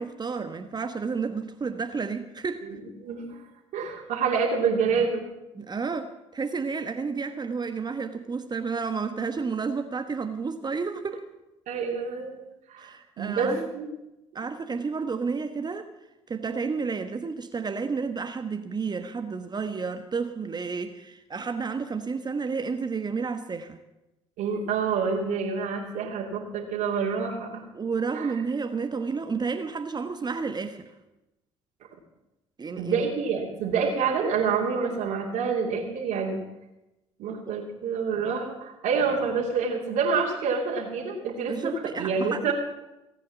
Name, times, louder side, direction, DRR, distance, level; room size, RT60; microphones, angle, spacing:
voice 1, 0.0-2.7 5.5-11.2 12.8-13.7 14.3-15.9 16.3-23.8 27.7-30.9 32.6-33.1 37.5-37.6 41.5-42.5, right 5 dB, 30° right, 7 dB, 1.2 m, -31 dB
voice 2, 3.0-3.4 3.7-5.2 11.7-12.3 12.7-13.9 24.4-27.6 28.1-28.3 32.8-36.4 37.2-42.5, right 5 dB, 65° right, -3 dB, 2.8 m, -27 dB
18.0 x 8.5 x 7.4 m, 0.94 s
hypercardioid pair, 55°, 14 cm